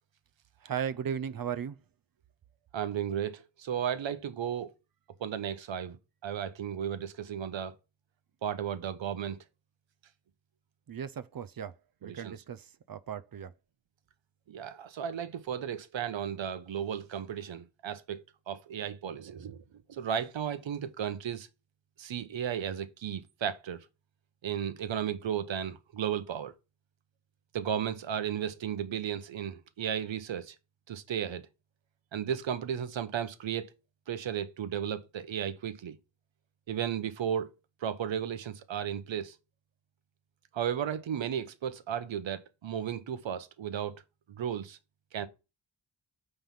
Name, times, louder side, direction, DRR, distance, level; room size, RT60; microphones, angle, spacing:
voice 1, 0.6-1.8 10.9-11.8 12.0-13.5, right 8 dB, 50° right, 0.6 m, -36 dB
voice 2, 2.7-4.7 5.2-6.0 6.2-7.7 8.4-9.4 12.0-12.3 14.5-19.6 19.9-21.5 22.0-23.8 24.4-26.5 27.5-30.5 30.9-31.5 32.1-33.7 34.1-36.0 36.7-37.5 37.8-39.3 40.5-44.0 44.3-44.8 45.1-45.3, right 9 dB, 85° right, 1.0 m, -34 dB
9.2 x 3.5 x 5.7 m
wide cardioid pair, 155°, 44 cm